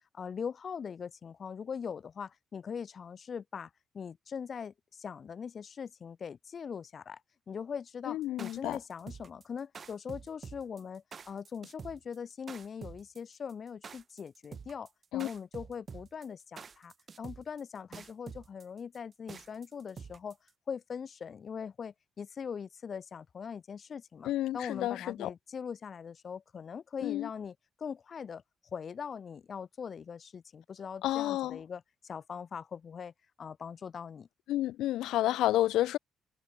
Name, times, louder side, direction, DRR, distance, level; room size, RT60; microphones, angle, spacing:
voice 1, 0.0-7.2 7.5-20.4 20.7-28.4 28.7-33.1 33.4-34.3, left 6 dB, 50° left, 1.8 m, -41 dB
voice 2, 8.1-8.8 15.1-15.3 24.2-25.3 27.0-27.3 31.0-31.6 34.5-36.0, left 14 dB, 85° left, 0.6 m, -30 dB
sound 1, 8.2-20.5, right 6 dB, 45° right, 1.7 m, -47 dB
cardioid pair, 90°, 0 cm